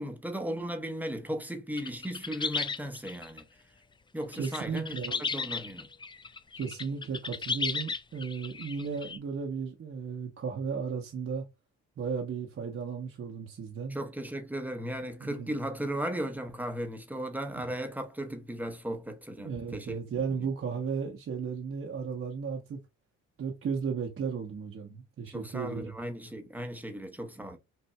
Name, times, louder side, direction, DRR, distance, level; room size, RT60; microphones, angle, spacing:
voice 1, 0.0-3.4 4.1-5.9 13.9-20.0 20.4-20.5 25.3-27.6, right 1 dB, 5° right, 0.9 m, -36 dB
sound 1, 1.7-3.4 4.3-9.2, left 4 dB, 15° left, 0.3 m, -35 dB
voice 2, 4.3-5.2 6.5-11.5 12.0-14.0 15.2-15.5 19.4-22.8 23.4-25.9, right 6 dB, 45° right, 1.0 m, -35 dB
5.5 x 2.6 x 2.2 m
cardioid pair, 90°, 30 cm